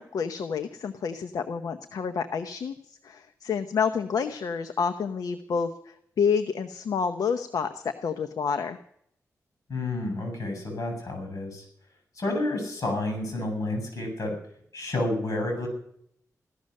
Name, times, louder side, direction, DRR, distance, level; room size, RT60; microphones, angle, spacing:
voice 1, 0.0-8.8, left 6 dB, 80° left, 8 dB, 0.9 m, -29 dB
voice 2, 9.7-11.6 12.1-14.3 14.7-15.7, left 2 dB, 60° left, 4 dB, 7.4 m, -30 dB
16.5 x 13.0 x 6.6 m, 0.70 s
cardioid pair, 70°, 6 cm